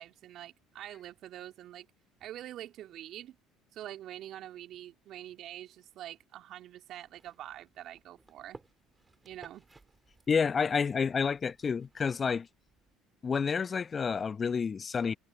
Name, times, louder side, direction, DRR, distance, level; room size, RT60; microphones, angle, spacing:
voice 1, 0.0-1.9 2.2-3.4 3.7-8.6 9.2-9.6, right 12 dB, 60° right, 3.4 m, -45 dB
sound 1, 7.0-13.0, right 3 dB, 20° right, 5.1 m, -59 dB
voice 2, 10.3-12.5 13.2-15.2, left 6 dB, 35° left, 0.9 m, -29 dB
hypercardioid pair, 60°, 0 cm